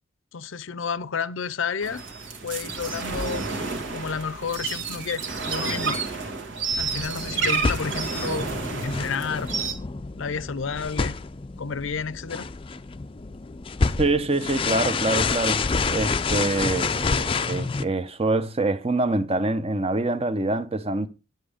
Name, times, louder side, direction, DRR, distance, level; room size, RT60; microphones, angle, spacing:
voice 1, 0.3-2.0 2.4-3.4 3.9-6.0 6.8-8.5 8.8-9.5 10.2-11.2 11.6-12.5, left 5 dB, 75° left, 0.6 m, -31 dB
sound 1, 1.8-9.7, right 4 dB, 65° right, 2.0 m, -30 dB
sound 2, 6.7-17.8, left 4 dB, 25° left, 0.5 m, -28 dB
voice 2, 14.0-15.6 15.9-21.1, right 2 dB, 30° right, 0.8 m, -25 dB
10.5 x 7.7 x 5.0 m
head